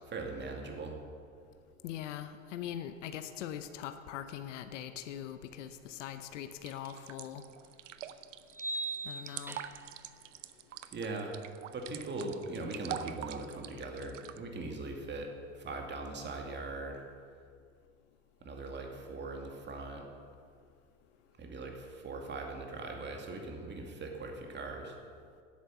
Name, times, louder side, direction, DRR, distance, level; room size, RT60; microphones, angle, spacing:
voice 1, 0.1-1.0 10.9-11.4 11.7-15.3 15.6-17.0 18.4-20.0 21.4-25.0, right 2 dB, 30° right, 2 dB, 2.3 m, -40 dB
voice 2, 1.8-7.4 9.0-9.6, left 10 dB, 75° left, 9 dB, 0.8 m, -42 dB
sound 1, 6.7-14.4, right 11 dB, 85° right, 0.7 m, -44 dB
sound 2, 6.9-7.0 8.5-10.0, right 2 dB, 5° right, 0.5 m, -39 dB
10.5 x 8.6 x 6.9 m, 2.2 s
hypercardioid pair, 90°, 37 cm